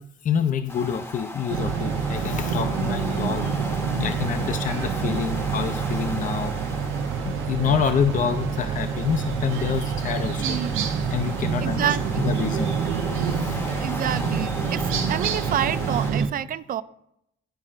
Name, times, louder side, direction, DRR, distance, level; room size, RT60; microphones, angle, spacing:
voice 1, 0.2-3.4 4.0-6.5 7.2-10.6 11.1-11.9 12.2-12.8 13.4-13.7, left 7 dB, 40° left, 8 dB, 0.5 m, -27 dB
sound 1, 0.7-16.1, left 1 dB, 10° left, 0.8 m, -37 dB
sound 2, 1.5-16.3, right 6 dB, 85° right, 0.8 m, -27 dB
voice 2, 10.4-11.0 11.6-12.3 13.5-16.8, right 10 dB, 45° right, 15 dB, 0.4 m, -29 dB
11.5 x 4.3 x 2.5 m, 0.78 s
cardioid pair, 90°, 20 cm